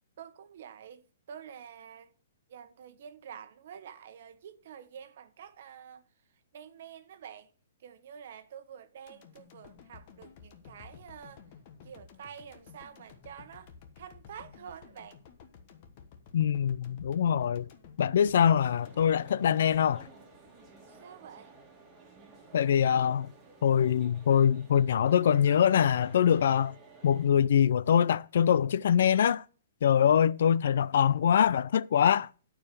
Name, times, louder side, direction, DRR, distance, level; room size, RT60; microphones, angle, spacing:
voice 1, 0.2-2.1 2.5-6.1 6.5-7.5 7.8-11.4 11.8-15.2 20.9-21.5, right 8 dB, 50° right, 1.1 m, -48 dB
sound 1, 9.1-21.3 21.7-21.8, left 6 dB, 35° left, 1.2 m, -53 dB
voice 2, 16.3-17.7 18.0-20.0 22.5-23.3 23.6-26.7 27.0-29.4 29.8-32.3, left 8 dB, 60° left, 0.4 m, -24 dB
sound 2, 18.8-27.3, right 3 dB, 10° right, 2.1 m, -54 dB
11.5 x 4.8 x 6.7 m
hypercardioid pair, 170°, 0 cm